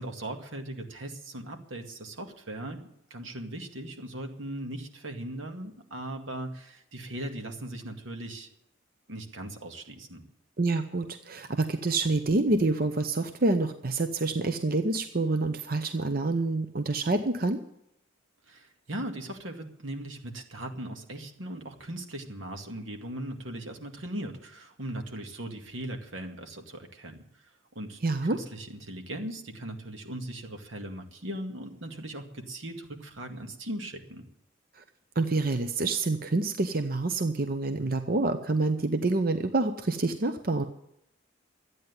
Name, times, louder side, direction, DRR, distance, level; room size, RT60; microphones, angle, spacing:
voice 1, 0.0-8.5 9.1-10.2 18.5-27.5 27.8-28.0 28.3-34.2, right 1 dB, 85° right, 4 dB, 2.1 m, -39 dB
voice 2, 10.6-17.6 28.0-28.4 34.8-34.9 35.2-40.6, right 2 dB, 50° right, 8 dB, 0.7 m, -27 dB
13.0 x 9.3 x 9.6 m, 0.78 s
head